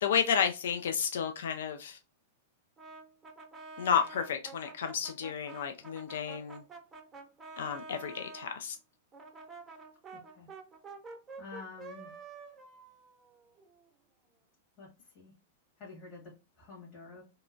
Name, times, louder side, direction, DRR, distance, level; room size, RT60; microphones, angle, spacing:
voice 1, 0.0-2.0 3.8-6.6 7.6-8.8, left 7 dB, 70° left, 0.4 m, -31 dB
Brass instrument, 2.8-8.5 9.1-13.9, right 4 dB, 20° right, 0.7 m, -48 dB
voice 2, 10.1-10.5 11.4-12.1 14.8-14.9 15.1-15.3 15.8-17.2, left 4 dB, 45° left, 1.4 m, -48 dB
2.8 x 2.2 x 2.5 m
hypercardioid pair, 100°, 0 cm